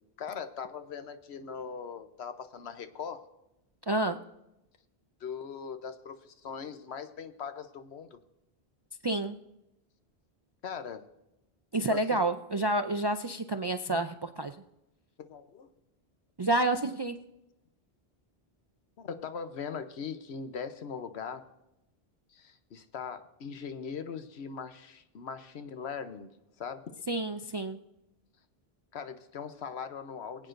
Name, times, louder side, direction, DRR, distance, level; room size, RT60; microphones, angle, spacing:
voice 1, 0.2-3.3 5.2-8.2 10.6-11.1 11.9-12.2 13.9-14.0 15.2-15.7 19.0-21.5 22.3-26.3 26.6-27.0 28.9-30.5, left 6 dB, 85° left, 10 dB, 1.1 m, -40 dB
voice 2, 3.9-4.2 9.0-9.4 11.7-14.6 16.4-17.2 27.1-27.8, right 2 dB, 45° right, 7 dB, 0.3 m, -29 dB
22.5 x 8.6 x 2.6 m, 0.90 s
omnidirectional pair, 1.1 m